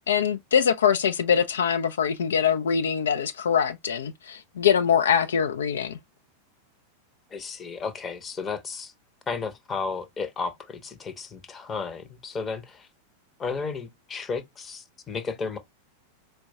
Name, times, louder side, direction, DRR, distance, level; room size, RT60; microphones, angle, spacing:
voice 1, 0.1-6.0, left 7 dB, 65° left, 0.3 m, -23 dB
voice 2, 7.3-8.9 9.3-12.9 13.4-15.6, left 4 dB, 20° left, 0.7 m, -33 dB
4.4 x 2.2 x 2.7 m
figure-of-eight pair, 90°, 0 cm